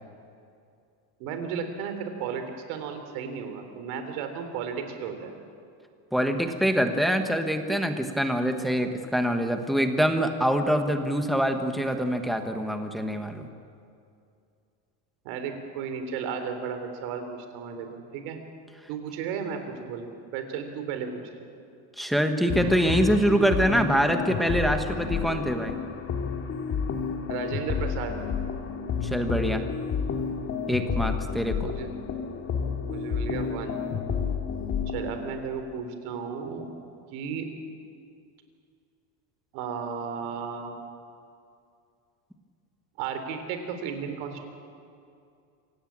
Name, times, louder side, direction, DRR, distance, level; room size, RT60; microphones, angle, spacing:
voice 1, 1.2-5.3 15.2-18.4 18.9-21.3 27.3-28.1 31.6-31.9 32.8-33.8 34.9-36.7 37.1-37.5 39.5-40.8 43.0-44.5, right 6 dB, 70° right, 7 dB, 3.7 m, -34 dB
voice 2, 6.1-13.5 22.0-25.8 29.0-29.6 30.7-31.7, equal, ahead, 6 dB, 1.3 m, -25 dB
sound 1, 22.5-35.3, left 6 dB, 30° left, 2.2 m, -30 dB
26.0 x 17.0 x 8.9 m, 2.4 s
cardioid pair, 155°, 47 cm